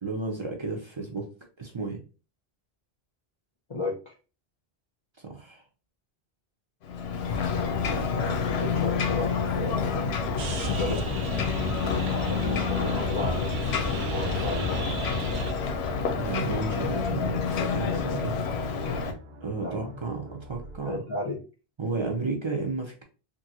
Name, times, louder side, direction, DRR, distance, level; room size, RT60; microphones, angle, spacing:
voice 1, 0.0-1.3 1.6-2.0 5.2-5.6 16.0-18.4 19.4-21.0 21.8-23.0, right 3 dB, 40° right, 1 dB, 0.4 m, -33 dB
voice 2, 3.7-4.2 8.1-10.1 10.7-11.8 12.3-13.5 14.0-14.7 19.6-19.9 20.8-21.4, left 2 dB, 35° left, -1 dB, 0.5 m, -34 dB
Ocean, 6.8-19.1, left 5 dB, 85° left, 0.8 m, -28 dB
sound 1, 10.4-20.8, right 3 dB, 75° right, 0.8 m, -38 dB
3.0 x 2.4 x 2.7 m, 0.34 s
omnidirectional pair, 1.0 m